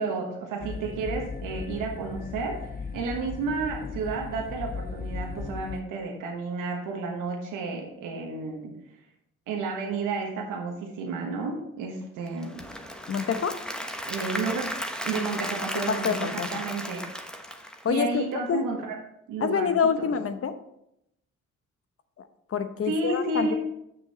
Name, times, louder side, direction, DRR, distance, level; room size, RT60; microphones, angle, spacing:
voice 1, 0.0-8.7 9.5-12.6 14.1-14.6 15.0-17.0 17.9-19.0 19.3-19.7 20.0-20.1 22.8-23.5, right 4 dB, 80° right, 1 dB, 1.3 m, -31 dB
sound 1, 0.6-5.8, left 5 dB, 30° left, 0.6 m, -37 dB
Applause / Crowd, 12.3-18.3, equal, 5° left, 1.1 m, -35 dB
voice 2, 13.1-13.5 15.9-16.6 17.8-18.2 18.5-18.6 19.4-20.5 22.5-23.5, left 6 dB, 45° left, 10 dB, 0.9 m, -26 dB
7.7 x 6.4 x 4.2 m, 0.80 s
supercardioid pair, 60°, 31 cm